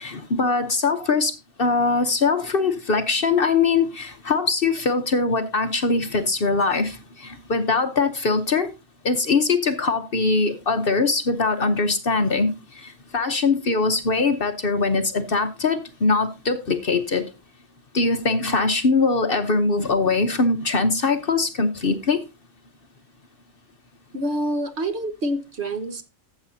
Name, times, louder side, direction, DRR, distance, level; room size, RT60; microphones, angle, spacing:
voice 1, 0.0-1.3 1.6-8.7 9.0-12.5 12.7-17.3 17.9-22.2, left 4 dB, 45° left, 1.0 m, -22 dB
voice 2, 24.1-26.0, right 1 dB, 50° right, 1.4 m, -27 dB
14.0 x 7.3 x 2.7 m
omnidirectional pair, 1.4 m